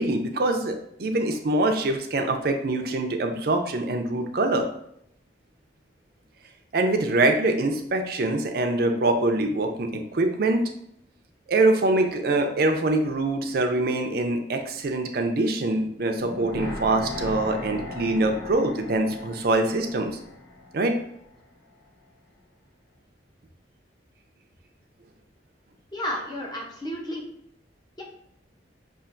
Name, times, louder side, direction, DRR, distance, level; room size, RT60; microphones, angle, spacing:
voice 1, 0.0-4.7 6.7-10.7 11.5-20.2 20.7-21.0, right 2 dB, 55° right, 5 dB, 0.5 m, -24 dB
sound 1, 16.2-21.3 21.6-21.7, left 2 dB, 70° left, 1.3 m, -38 dB
voice 2, 25.9-27.2 28.0-28.1, equal, 25° left, -2 dB, 0.7 m, -32 dB
5.6 x 2.5 x 2.5 m, 0.73 s
head